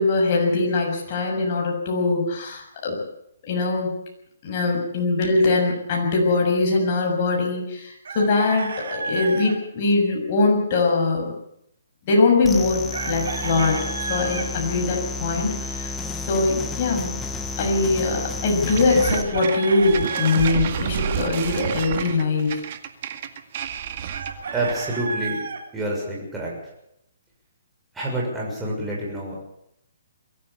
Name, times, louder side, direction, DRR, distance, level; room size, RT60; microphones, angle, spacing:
voice 1, 0.0-3.0 3.4-3.9 4.4-11.3 12.1-16.0 16.3-17.2 17.6-22.6, left 3 dB, 35° left, 0 dB, 7.1 m, -22 dB
Chicken rooster, 8.0-9.5 12.9-14.5 19.0-20.6 24.1-25.6, right 4 dB, 75° right, 4.0 m, -31 dB
sound 1, 12.4-19.2, left 3 dB, 10° left, 1.5 m, -31 dB
sound 2, 18.7-24.9, right 8 dB, 40° right, 2.0 m, -30 dB
voice 2, 24.5-25.4 25.7-26.5 27.9-29.4, right 1 dB, 5° right, -4 dB, 6.6 m, -27 dB
23.0 x 14.5 x 8.4 m, 0.77 s
hypercardioid pair, 165°, 0 cm